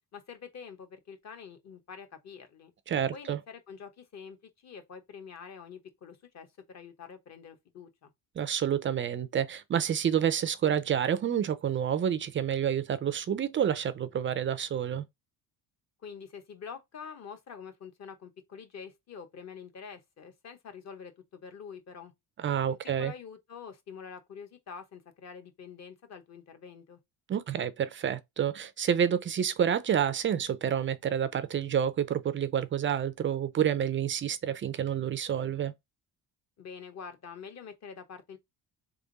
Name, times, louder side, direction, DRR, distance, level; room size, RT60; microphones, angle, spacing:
voice 1, 0.1-2.7 3.1-4.4 4.6-8.1 16.0-22.1 22.7-27.0 36.6-38.4, left 6 dB, 40° left, 1.0 m, -46 dB
voice 2, 2.9-3.4 8.4-15.0 22.4-23.1 27.3-35.7, right 9 dB, 30° right, 0.4 m, -29 dB
3.6 x 3.4 x 3.9 m
cardioid pair, 135°, 41 cm